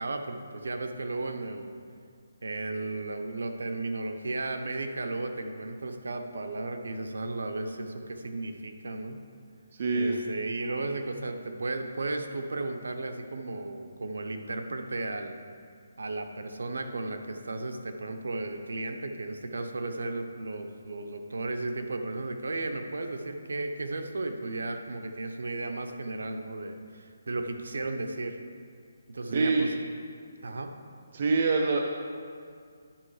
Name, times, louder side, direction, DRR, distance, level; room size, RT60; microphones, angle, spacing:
voice 1, 0.0-1.7 2.4-9.2 9.9-15.4 16.0-28.4 29.1-29.8 30.4-30.7, right 2 dB, 85° right, 6 dB, 0.8 m, -34 dB
voice 2, 9.8-10.2 29.3-29.7 31.1-31.8, right 4 dB, 40° right, 1 dB, 0.6 m, -25 dB
10.0 x 6.5 x 4.9 m, 2.2 s
hypercardioid pair, 170°, 0 cm